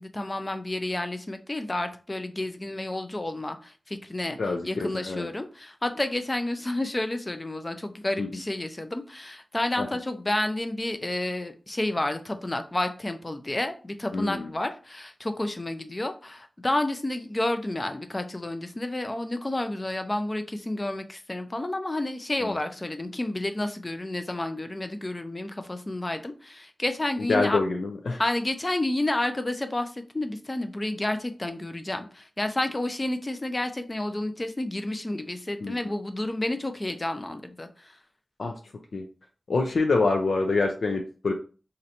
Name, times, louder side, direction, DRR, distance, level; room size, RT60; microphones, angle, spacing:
voice 1, 0.0-4.4 4.6-27.6 28.2-38.0, left 1 dB, 25° left, 8 dB, 0.5 m, -30 dB
voice 2, 4.4-5.3 8.2-8.3 9.8-9.9 14.1-14.5 22.4-22.5 27.3-28.2 35.6-35.8 38.4-38.5 38.9-39.0 39.5-41.3, left 3 dB, 85° left, 2 dB, 0.4 m, -26 dB
2.8 x 2.5 x 4.3 m, 0.37 s
wide cardioid pair, 95°, 0 cm